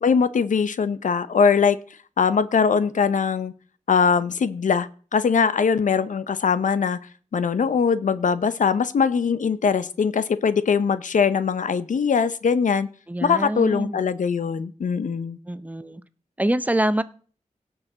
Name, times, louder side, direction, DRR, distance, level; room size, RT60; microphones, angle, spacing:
voice 1, 0.0-1.8 2.2-3.5 3.9-7.0 7.3-12.9 13.2-15.4, left 6 dB, 75° left, 14 dB, 0.7 m, -21 dB
voice 2, 13.1-14.0 15.5-16.0 16.4-17.0, right 1 dB, 10° right, 13 dB, 0.7 m, -25 dB
17.0 x 6.4 x 3.9 m, 0.41 s
wide cardioid pair, 75°, 13 cm